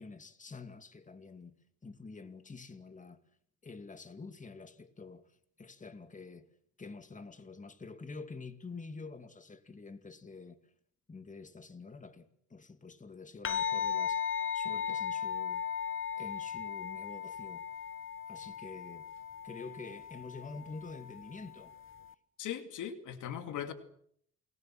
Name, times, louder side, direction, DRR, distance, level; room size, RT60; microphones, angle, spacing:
voice 1, 0.0-1.5 1.8-3.2 3.6-5.3 5.6-6.5 6.8-10.6 11.1-15.7 16.2-17.6 18.3-19.1 19.4-21.7, left 4 dB, 25° left, 2.3 m, -47 dB
sound 1, 13.4-22.1, left 8 dB, 40° left, 1.0 m, -37 dB
voice 2, 22.4-23.7, left 9 dB, 80° left, 2.6 m, -39 dB
29.0 x 20.5 x 7.7 m
cardioid pair, 90°, 30 cm